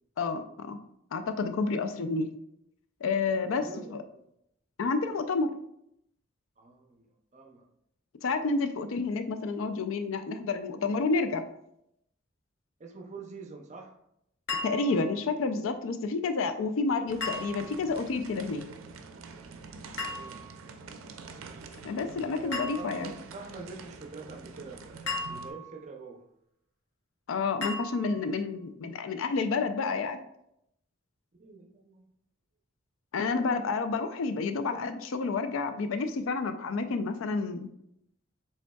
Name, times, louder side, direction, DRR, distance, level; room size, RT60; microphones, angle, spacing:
voice 1, 0.2-0.8 1.1-2.3 3.0-3.6 3.9-4.0 4.8-5.5 8.2-11.4 14.6-18.7 21.8-23.1 27.3-30.2 33.1-37.7, left 4 dB, 80° left, 9 dB, 0.4 m, -29 dB
voice 2, 3.5-4.2 6.6-7.1 7.3-7.7 12.8-14.0 20.1-20.5 22.0-26.2 31.4-32.1, right 4 dB, 35° right, 3 dB, 0.5 m, -45 dB
sound 1, 14.5-15.2 17.2-17.9 20.0-20.7 22.5-23.2 25.1-25.9 27.6-28.3, left 3 dB, 60° left, 1.0 m, -37 dB
sound 2, 17.1-25.5, right 4 dB, 85° right, 0.4 m, -46 dB
5.1 x 3.5 x 2.3 m, 0.77 s
head